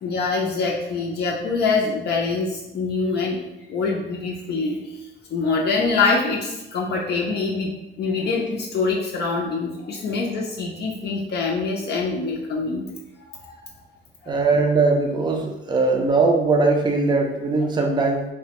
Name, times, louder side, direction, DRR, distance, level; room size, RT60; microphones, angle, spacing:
voice 1, 0.0-3.4 3.7-4.9 5.3-12.8 13.3-13.5 14.2-14.4, left 4 dB, 55° left, -2 dB, 0.5 m, -24 dB
voice 2, 14.3-18.3, right 3 dB, 20° right, 1 dB, 0.4 m, -20 dB
3.2 x 2.1 x 2.8 m, 0.96 s
cardioid pair, 90°, 20 cm